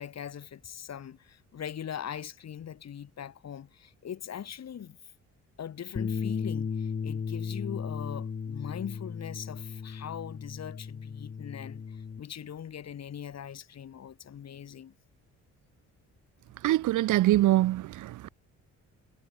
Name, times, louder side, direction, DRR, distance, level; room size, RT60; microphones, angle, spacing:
voice 1, 0.0-5.0 5.6-14.9, left 9 dB, 60° left, 6.6 m, -41 dB
Bass guitar, 6.0-12.2, left 6 dB, 35° left, 1.6 m, -35 dB
voice 2, 16.6-18.3, right 15 dB, 80° right, 1.3 m, -24 dB
cardioid pair, 90°, 30 cm